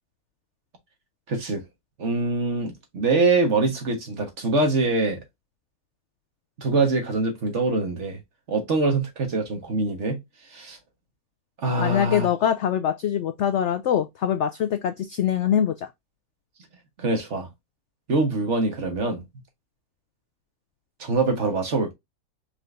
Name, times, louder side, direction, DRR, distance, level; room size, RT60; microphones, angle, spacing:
voice 1, 1.3-1.6 2.0-5.2 6.6-8.2 8.5-10.2 10.5-10.8 11.6-12.3 17.0-17.5 18.1-19.2 21.0-21.9, right 3 dB, 50° right, 1.6 m, -24 dB
voice 2, 11.8-15.9, left 9 dB, 75° left, 0.6 m, -23 dB
4.9 x 3.3 x 2.5 m
omnidirectional pair, 1.7 m